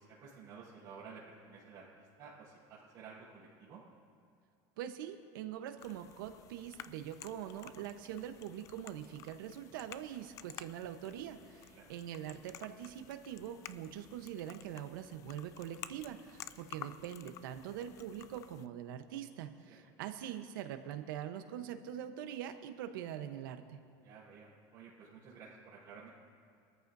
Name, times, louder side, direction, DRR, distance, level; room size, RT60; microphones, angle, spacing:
voice 1, 0.2-3.8 11.7-11.9 24.0-26.1, right 5 dB, 30° right, -12 dB, 4.2 m, -53 dB
voice 2, 4.8-23.8, right 10 dB, 85° right, 7 dB, 1.1 m, -43 dB
sound 1, 5.8-18.7, left 11 dB, 30° left, 0.3 m, -53 dB
24.0 x 13.5 x 2.7 m, 2.6 s
cardioid pair, 170°, 11 cm